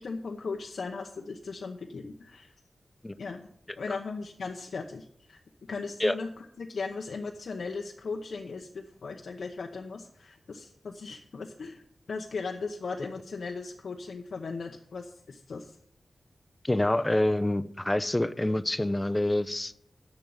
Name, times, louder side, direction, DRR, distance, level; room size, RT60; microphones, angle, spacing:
voice 1, 0.0-2.5 3.2-3.5 3.8-5.4 5.7-11.8 12.1-15.8, left 4 dB, 80° left, 3 dB, 0.8 m, -37 dB
voice 2, 16.6-19.7, left 1 dB, 20° left, 14 dB, 0.7 m, -26 dB
9.1 x 7.0 x 7.9 m, 0.69 s
cardioid pair, 50°, 0 cm